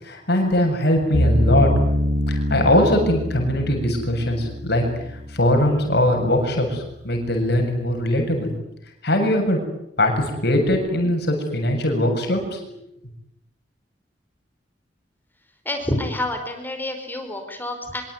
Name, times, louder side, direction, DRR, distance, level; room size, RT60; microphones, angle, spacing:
voice 1, 0.0-1.7 2.3-8.5 9.0-9.6 10.0-12.8, left 1 dB, 65° left, 3 dB, 7.3 m, -21 dB
sound 1, 1.1-6.3, equal, 70° right, 3.2 m, -25 dB
voice 2, 15.6-18.0, left 1 dB, 10° left, 5 dB, 4.7 m, -28 dB
25.5 x 24.5 x 9.6 m, 0.78 s
head